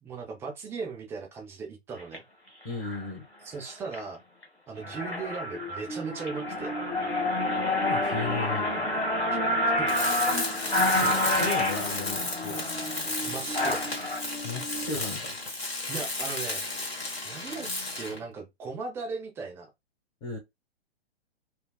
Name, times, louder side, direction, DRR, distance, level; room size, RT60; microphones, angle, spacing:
voice 1, 0.0-2.2 3.4-4.2 4.7-6.7 9.8-9.9 13.2-13.8 15.9-16.6 17.2-19.7, right 4 dB, 5° right, 0.5 m, -37 dB
sound 1, 2.0-2.2 2.8-3.1 3.6-4.0 4.4-4.5 4.8-14.2, left 1 dB, 90° left, 1.5 m, -28 dB
voice 2, 2.6-3.2 7.8-8.8 10.5-12.6 14.4-15.3 20.2-20.4, left 3 dB, 30° left, 1.4 m, -35 dB
sound 2, 5.9-14.9, right 1 dB, 45° left, 1.4 m, -40 dB
Tools, 9.9-18.3, left 2 dB, 70° left, 1.8 m, -33 dB
4.6 x 2.3 x 2.3 m
figure-of-eight pair, 115°, 32 cm